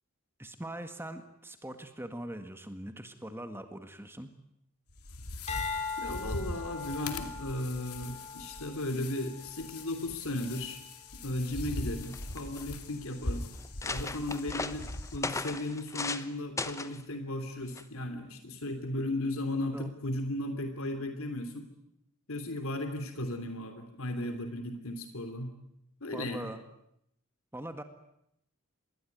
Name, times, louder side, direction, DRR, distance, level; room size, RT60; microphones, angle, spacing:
voice 1, 0.4-4.3 19.7-19.9 26.1-26.6 27.5-27.8, right 1 dB, 10° right, 8 dB, 1.8 m, -41 dB
sound 1, 4.9-15.2, left 2 dB, 85° left, 2.5 m, -41 dB
sound 2, 5.5-9.9 10.5-10.9, left 5 dB, 30° left, 4.2 m, -40 dB
voice 2, 6.0-10.8 11.2-13.5 13.8-21.7 22.3-25.5 26.0-26.5, left 1 dB, 65° left, 7 dB, 3.0 m, -36 dB
sound 3, 11.7-11.8 12.0-12.6 13.2-13.3 13.6-16.3 16.6-17.0 17.8-18.0, left 3 dB, 15° left, 1.1 m, -37 dB
27.0 x 21.0 x 9.4 m, 0.76 s
head